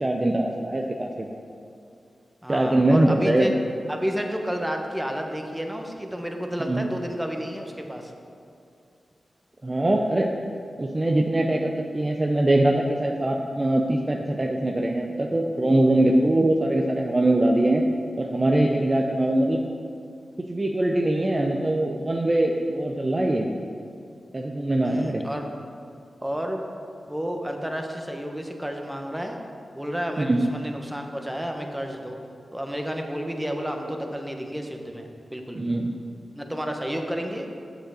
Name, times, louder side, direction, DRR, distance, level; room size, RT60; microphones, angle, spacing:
voice 1, 0.0-1.3 2.5-3.5 6.7-6.8 9.6-10.3 10.8-17.8 18.1-19.6 20.4-23.5 24.3-25.2 30.2-30.4 35.6-35.9, right 1 dB, 35° right, 1 dB, 0.7 m, -22 dB
voice 2, 2.4-3.5 3.9-8.1 24.8-25.5 26.2-26.6 27.1-29.4 29.7-32.2 32.5-35.7 36.3-37.5, equal, 10° right, 3 dB, 1.2 m, -31 dB
7.9 x 6.3 x 6.4 m, 2.5 s
cardioid pair, 45°, 0 cm